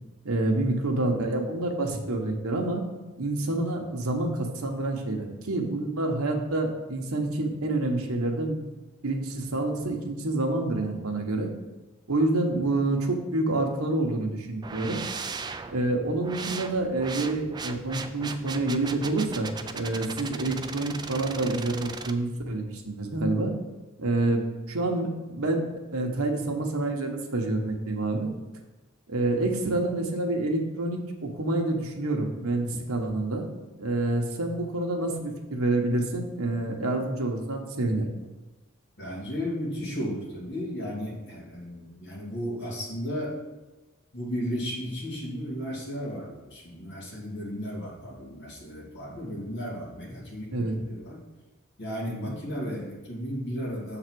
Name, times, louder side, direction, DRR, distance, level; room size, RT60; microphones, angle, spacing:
voice 1, 0.2-2.8 3.2-8.6 9.0-11.5 12.1-15.0 15.7-23.5 24.0-24.4 24.7-25.6 25.9-28.3 29.1-33.5 33.8-38.1 50.5-50.7 52.1-52.4, right 2 dB, 85° right, 2 dB, 1.1 m, -28 dB
sound 1, 14.6-22.1, right 4 dB, 20° right, 0.3 m, -38 dB
voice 2, 39.0-43.4 44.1-51.2 51.8-54.0, equal, 55° left, -4 dB, 2.3 m, -34 dB
6.8 x 4.0 x 6.2 m, 1.1 s
head